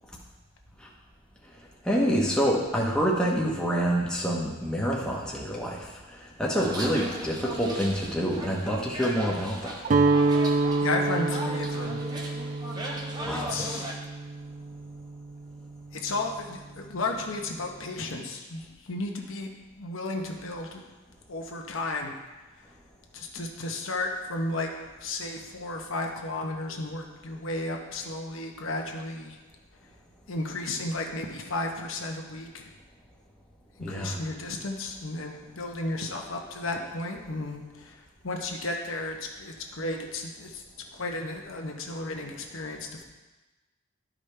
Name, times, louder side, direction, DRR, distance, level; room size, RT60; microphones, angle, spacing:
voice 1, 1.9-5.8 6.4-9.7 13.2-13.5 33.8-34.2, equal, 5° left, -4 dB, 1.0 m, -27 dB
sound 1, 6.6-13.9, right 1 dB, 20° right, 0.7 m, -38 dB
voice 2, 6.8-7.3 10.8-12.0 13.2-13.9 15.9-19.5 19.8-20.8 21.3-22.1 23.1-24.7 25.0-29.4 30.3-32.7 33.9-40.6 40.9-43.0, left 2 dB, 70° left, 2 dB, 0.9 m, -33 dB
Guitar, 9.8-15.9, right 3 dB, 35° right, 0.3 m, -27 dB
12.0 x 5.0 x 3.3 m, 1.2 s
head